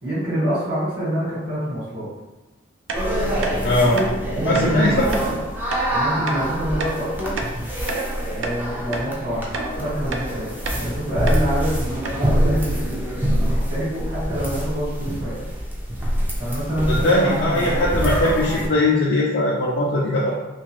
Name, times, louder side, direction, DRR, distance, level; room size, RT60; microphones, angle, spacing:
voice 1, 0.0-2.1 3.7-5.4 5.9-7.4 8.2-9.5 9.8-15.5 16.4-17.9, equal, 45° right, -8 dB, 1.2 m, -26 dB
sound 1, 2.9-18.7, equal, 10° right, 0.4 m, -25 dB
sound 2, 2.9-3.0 3.4-3.6 3.9-4.1 4.5-4.7 5.1-5.3 5.7-5.8 6.3-6.4 6.8-7.0 7.4-8.1 8.4-8.6 8.9-9.1 9.5-9.7 10.1-10.3 10.6-10.8 11.3-11.4 11.7-11.8 12.0-12.2, right 3 dB, 75° right, 0.4 m, -29 dB
voice 2, 3.6-4.0 4.4-4.9 16.9-20.3, left 1 dB, 60° left, -5 dB, 0.4 m, -20 dB
2.7 x 2.4 x 3.0 m, 1.1 s
head